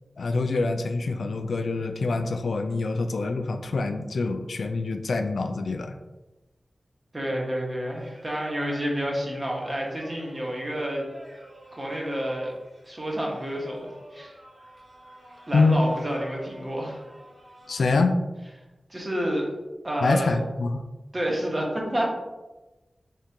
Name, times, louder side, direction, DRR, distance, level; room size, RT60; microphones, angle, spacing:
voice 1, 0.2-6.0 15.5-15.8 17.7-18.2 20.0-20.8, left 3 dB, 90° left, 6 dB, 0.3 m, -25 dB
voice 2, 7.1-11.0 11.7-12.5 12.8-14.3 15.5-17.0 18.9-19.5 19.8-20.4 21.1-22.1, equal, 30° right, -2 dB, 1.0 m, -29 dB
Singing, 7.8-18.0, right 1 dB, 70° right, 1.1 m, -49 dB
3.6 x 3.5 x 2.8 m, 1.1 s
wide cardioid pair, 90°, 0 cm